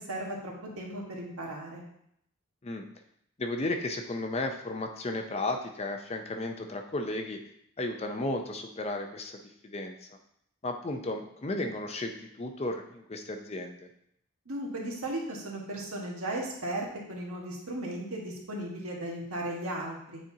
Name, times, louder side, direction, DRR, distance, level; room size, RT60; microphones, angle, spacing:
voice 1, 0.0-1.8 14.4-20.2, right 1 dB, 75° right, -2 dB, 1.5 m, -36 dB
voice 2, 3.4-7.4 7.8-10.0 10.6-13.9, left 2 dB, 30° left, 4 dB, 0.5 m, -34 dB
9.0 x 4.3 x 2.8 m, 0.72 s
head